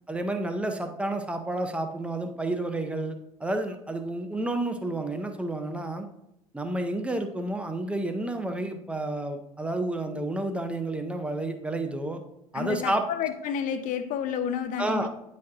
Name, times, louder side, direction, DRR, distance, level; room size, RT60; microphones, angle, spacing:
voice 1, 0.1-6.1 6.5-12.2 12.5-13.0 14.8-15.1, right 2 dB, 5° right, 0.7 m, -30 dB
voice 2, 12.5-15.1, left 8 dB, 45° left, 0.6 m, -30 dB
9.4 x 4.2 x 2.5 m
figure-of-eight pair, 65°, 18 cm